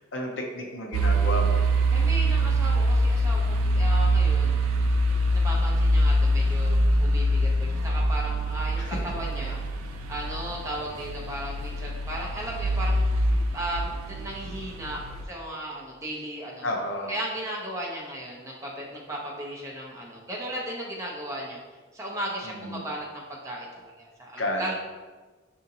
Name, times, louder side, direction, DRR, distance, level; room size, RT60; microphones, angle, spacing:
voice 1, 0.0-1.6 8.8-9.0 16.6-17.1 22.4-22.8 24.4-24.7, left 1 dB, 60° left, 1 dB, 0.6 m, -31 dB
sound 1, 0.9-15.2, right 1 dB, 90° right, 0.4 m, -24 dB
voice 2, 1.9-4.6 5.1-9.6 10.1-16.6 17.1-21.6 21.9-24.7, right 1 dB, 15° right, -3 dB, 0.5 m, -36 dB
4.9 x 2.6 x 2.7 m, 1.3 s
head